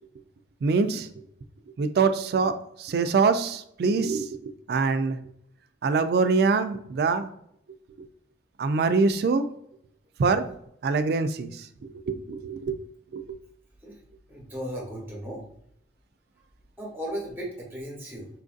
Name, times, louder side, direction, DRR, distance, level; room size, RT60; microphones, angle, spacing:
voice 1, 0.6-1.1 1.8-2.5 2.8-5.2 5.8-7.3 8.6-9.4 10.2-10.5 10.8-11.7 12.1-12.8 13.1-13.4, right 4 dB, 55° right, 10 dB, 0.3 m, -24 dB
voice 2, 14.3-15.4 16.8-18.3, equal, 10° right, -3 dB, 1.0 m, -36 dB
4.4 x 2.5 x 2.4 m, 0.71 s
head